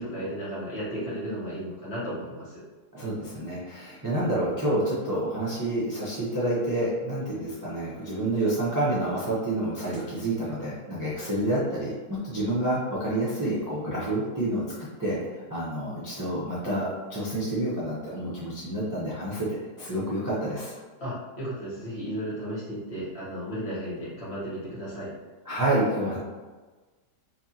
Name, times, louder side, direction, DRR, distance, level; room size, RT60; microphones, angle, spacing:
voice 1, 0.0-2.6 21.0-25.1, equal, 40° left, -10 dB, 1.7 m, -34 dB
voice 2, 2.9-19.5 19.8-20.8 25.4-26.2, right 1 dB, 20° right, -8 dB, 0.5 m, -28 dB
4.5 x 2.9 x 2.8 m, 1.3 s
omnidirectional pair, 1.9 m